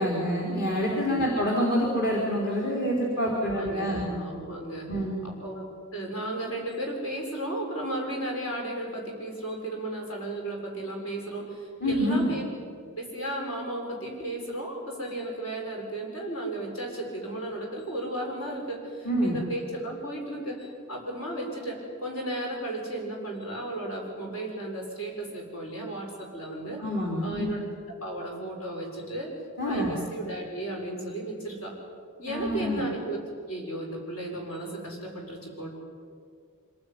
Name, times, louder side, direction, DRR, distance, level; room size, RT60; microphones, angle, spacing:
voice 1, 0.0-4.1 4.9-5.2 11.8-12.3 19.0-19.4 26.8-27.6 29.6-29.9 32.3-32.8, equal, 45° left, -3 dB, 4.3 m, -27 dB
voice 2, 3.4-4.9 5.2-12.4 13.0-26.8 27.2-29.3 29.6-31.7 32.2-35.7, right 1 dB, 65° left, 0 dB, 7.2 m, -34 dB
26.0 x 19.0 x 9.7 m, 2.2 s
head